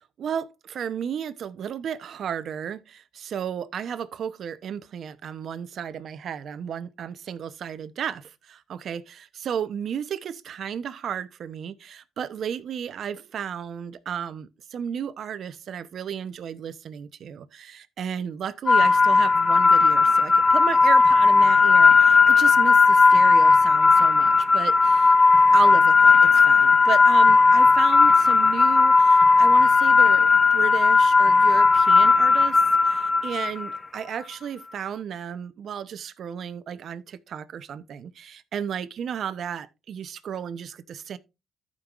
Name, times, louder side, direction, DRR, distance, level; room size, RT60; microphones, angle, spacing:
voice 1, 0.2-25.1 25.5-32.6 32.8-41.2, right 8 dB, 65° right, 0.7 m, -33 dB
sound 1, 18.7-33.8, left 4 dB, 30° left, 0.5 m, -17 dB
14.5 x 5.3 x 2.4 m
cardioid pair, 90°, 0 cm